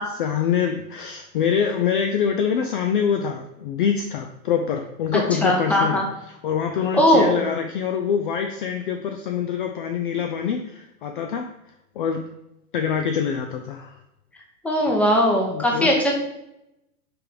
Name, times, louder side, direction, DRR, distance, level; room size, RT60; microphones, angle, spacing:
voice 1, 0.0-6.0 6.4-11.5 12.0-12.3 12.7-14.0 15.5-16.0, left 7 dB, 40° left, 5 dB, 0.4 m, -25 dB
voice 2, 5.4-6.0 6.9-7.5 14.6-16.1, equal, 5° left, 0 dB, 0.8 m, -19 dB
6.0 x 3.3 x 4.9 m, 0.88 s
hypercardioid pair, 130°, 45 cm